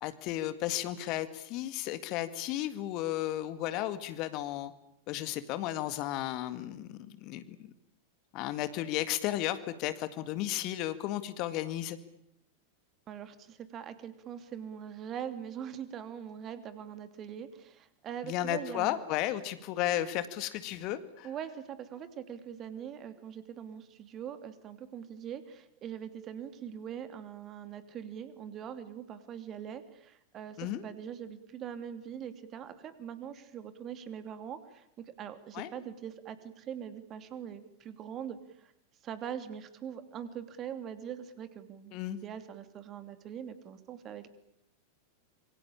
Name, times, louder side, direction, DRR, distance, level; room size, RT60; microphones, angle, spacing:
voice 1, 0.0-4.7 5.1-7.6 8.3-12.0 18.2-21.3 30.6-30.8 35.5-35.7 41.9-42.2, left 13 dB, 40° left, 12 dB, 1.9 m, -34 dB
voice 2, 13.1-19.0 21.2-34.9 35.2-38.7 39.0-44.3, right 9 dB, 30° right, 11 dB, 2.8 m, -42 dB
26.5 x 24.5 x 8.6 m, 0.76 s
figure-of-eight pair, 90°, 0 cm